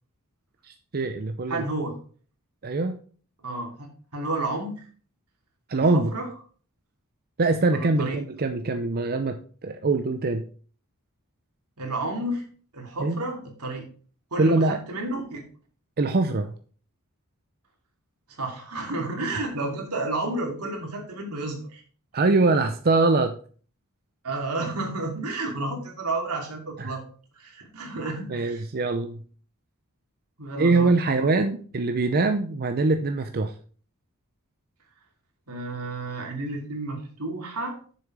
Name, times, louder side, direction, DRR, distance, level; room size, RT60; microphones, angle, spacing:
voice 1, 0.7-1.6 2.6-3.0 5.7-6.1 7.4-10.5 13.0-13.2 14.4-14.8 16.0-16.5 22.1-23.3 26.8-26.9 28.3-29.2 30.6-33.5, right 3 dB, 45° right, 7 dB, 0.6 m, -23 dB
voice 2, 1.5-2.0 3.4-3.9 4.1-4.8 5.7-6.3 7.7-8.2 11.8-12.4 12.7-13.9 14.3-15.4 18.4-21.8 24.2-27.0 27.4-28.6 30.4-30.9 35.5-37.8, right 2 dB, 85° right, 1 dB, 2.7 m, -31 dB
7.0 x 6.9 x 4.8 m, 0.43 s
head